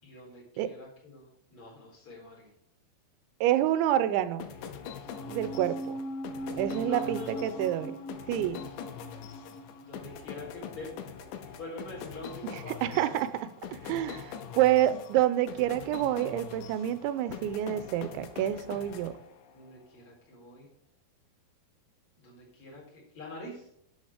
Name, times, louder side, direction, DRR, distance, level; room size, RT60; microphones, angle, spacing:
voice 1, 0.0-2.5 6.7-7.7 9.8-11.1 11.6-13.3 19.5-20.7 22.2-23.7, left 2 dB, 30° left, 4.8 m, -45 dB
voice 2, 3.4-4.5 5.3-6.0 6.6-8.0 8.3-8.6 12.4-19.2, right 12 dB, 90° right, 3.0 m, -28 dB
sound 1, 4.4-19.7, left 7 dB, 90° left, 3.4 m, -43 dB
sound 2, 5.0-11.6 11.9-12.0, right 1 dB, 65° left, 1.6 m, -41 dB
11.5 x 6.4 x 4.9 m
omnidirectional pair, 5.2 m